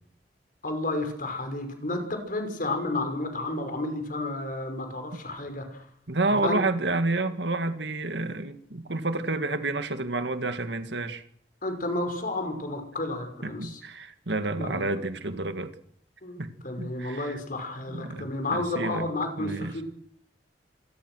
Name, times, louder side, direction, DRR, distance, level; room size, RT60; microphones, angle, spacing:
voice 1, 0.6-5.9 6.3-6.6 11.6-13.8 14.6-14.9 16.2-19.8, left 2 dB, 55° left, 6 dB, 5.6 m, -31 dB
voice 2, 6.1-11.2 13.4-15.7 16.4-16.5 16.8-17.4 17.9-19.1 19.4-19.7, right 2 dB, 85° right, 9 dB, 1.9 m, -29 dB
26.5 x 20.0 x 6.4 m, 0.67 s
head